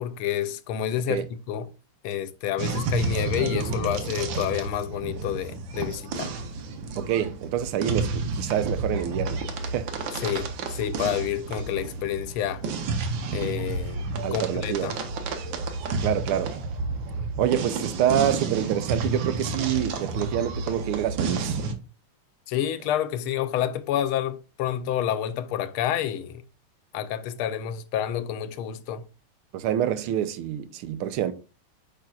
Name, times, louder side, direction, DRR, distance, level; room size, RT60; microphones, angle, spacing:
voice 1, 0.0-1.7 2.0-6.3 10.2-12.6 13.3-14.0 14.3-15.0 22.5-26.4 26.9-29.0, left 10 dB, 80° left, 1.4 m, -29 dB
sound 1, 2.6-21.7, right 4 dB, 70° right, 1.6 m, -31 dB
voice 2, 7.0-9.9 14.2-15.0 16.0-16.5 17.4-21.6 29.5-31.3, right 10 dB, 85° right, 1.5 m, -27 dB
8.7 x 5.8 x 2.3 m
omnidirectional pair, 2.3 m